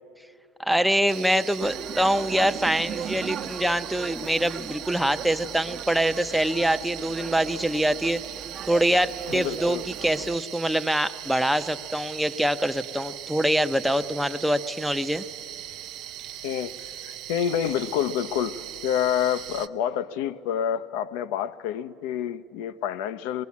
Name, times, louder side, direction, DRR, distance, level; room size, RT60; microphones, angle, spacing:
voice 1, 0.6-8.2 8.7-15.2, right 1 dB, ahead, 0.6 m, -24 dB
sound 1, 1.1-19.7, right 12 dB, 55° right, 0.6 m, -39 dB
sound 2, 1.6-10.4, right 8 dB, 40° right, 0.9 m, -38 dB
voice 2, 9.3-9.8 16.4-16.7 17.0-23.4, left 9 dB, 80° left, 0.6 m, -28 dB
23.0 x 21.0 x 8.4 m
cardioid pair, 135°, 0 cm